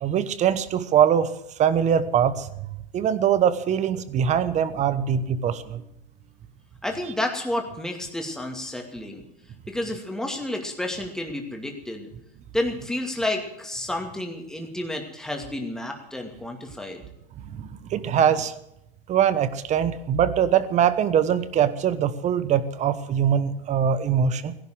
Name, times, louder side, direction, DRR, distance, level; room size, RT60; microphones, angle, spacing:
voice 1, 0.0-1.3 1.6-2.5 2.9-5.8 17.5-18.5 19.1-24.6, right 8 dB, 25° right, 14 dB, 1.1 m, -22 dB
voice 2, 6.8-9.2 9.7-12.0 12.5-17.0, left 1 dB, ahead, 2 dB, 2.5 m, -30 dB
16.0 x 11.5 x 7.8 m, 0.84 s
hypercardioid pair, 125°, 30 cm